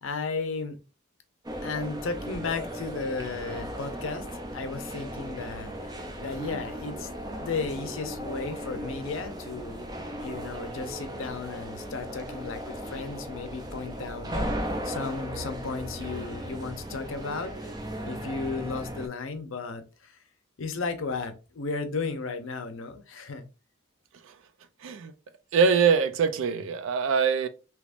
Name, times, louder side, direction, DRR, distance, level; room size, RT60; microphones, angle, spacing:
voice 1, 0.0-0.8 1.6-7.1 7.4-9.8 10.1-14.6 14.8-17.7 18.0-20.2 20.6-23.4, left 4 dB, 85° left, 0.6 m, -34 dB
sound 1, 1.4-19.1, equal, 20° right, 0.4 m, -36 dB
voice 2, 24.8-25.1 25.5-27.5, right 6 dB, 80° right, 0.4 m, -23 dB
3.4 x 2.9 x 2.5 m
head